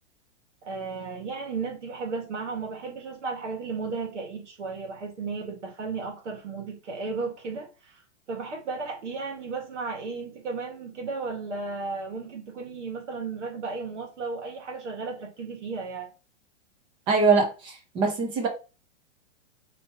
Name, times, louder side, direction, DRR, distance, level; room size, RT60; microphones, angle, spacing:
voice 1, 0.6-7.7 8.3-16.1, right 4 dB, 90° right, 1.9 m, -34 dB
voice 2, 17.1-18.5, right 4 dB, 15° right, 0.5 m, -23 dB
4.1 x 3.4 x 2.9 m
hypercardioid pair, 160°, 34 cm